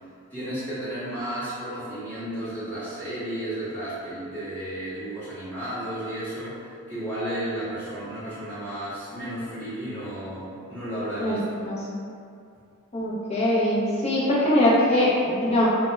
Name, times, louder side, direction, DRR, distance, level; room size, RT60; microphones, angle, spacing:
voice 1, 0.3-6.6 6.9-11.6, right 1 dB, 10° left, -13 dB, 0.9 m, -33 dB
voice 2, 11.2-11.8 12.9-15.7, left 1 dB, 30° left, -7 dB, 0.5 m, -22 dB
2.2 x 2.1 x 3.1 m, 2.4 s
head